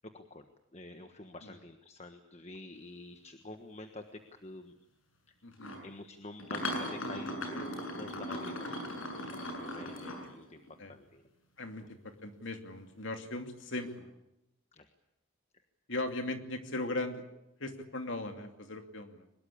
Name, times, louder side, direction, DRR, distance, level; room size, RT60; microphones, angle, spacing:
voice 1, 0.0-0.4 0.7-4.7 5.3-5.4 5.8-8.8 9.1-10.6 10.9-11.3 11.8-11.9 14.7-14.9 15.5-15.6, left 2 dB, 30° left, 7 dB, 1.3 m, -48 dB
voice 2, 5.4-5.8 10.8-10.9 11.6-14.1 15.9-17.2 17.6-19.2, left 2 dB, 65° left, 6 dB, 2.7 m, -38 dB
sound 1, 5.5-5.8 6.4-10.7 13.7-14.0, left 1 dB, 85° left, 7.2 m, -38 dB
23.5 x 21.0 x 8.5 m, 0.88 s
head